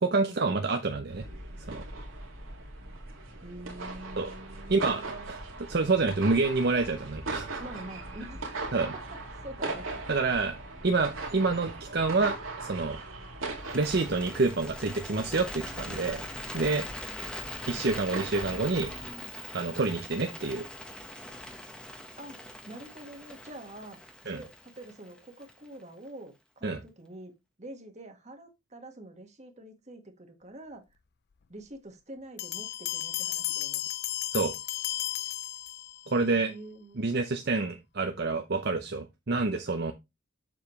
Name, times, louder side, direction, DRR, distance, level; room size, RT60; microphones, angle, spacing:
voice 1, 0.0-1.2 1.7-1.8 4.2-4.3 4.7-7.6 8.7-8.9 10.1-10.6 10.8-13.0 13.7-16.2 16.5-16.9 17.7-18.9 19.5-20.6 24.3-24.4 26.6-26.8 34.3-34.5 36.1-36.5 37.0-39.9, right 3 dB, 55° right, 0.7 m, -28 dB
sound 1, 1.1-19.1, right 2 dB, 80° right, 2.2 m, -40 dB
voice 2, 3.4-5.3 7.6-9.0 9.4-10.0 18.4-19.3 22.2-22.4 22.7-24.0 24.3-27.3 27.6-30.8 31.5-33.9 36.3-37.0, right 1 dB, 35° right, 1.6 m, -46 dB
Bird, 13.6-25.8, left 1 dB, 5° left, 1.1 m, -42 dB
Bell, 32.4-36.2, left 15 dB, 50° left, 0.4 m, -34 dB
7.2 x 7.2 x 3.2 m
head